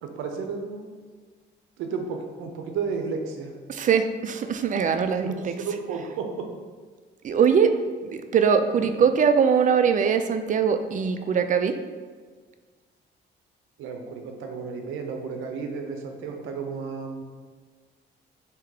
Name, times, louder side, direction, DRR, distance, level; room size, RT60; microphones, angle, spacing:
voice 1, 0.0-0.9 1.8-3.5 5.2-6.5 8.8-8.9 13.8-17.2, right 5 dB, 90° right, 4 dB, 0.6 m, -33 dB
voice 2, 3.7-5.5 7.2-7.7 8.1-11.8, right 6 dB, 40° right, 8 dB, 0.4 m, -22 dB
3.5 x 2.9 x 4.7 m, 1.5 s
cardioid pair, 90°, 20 cm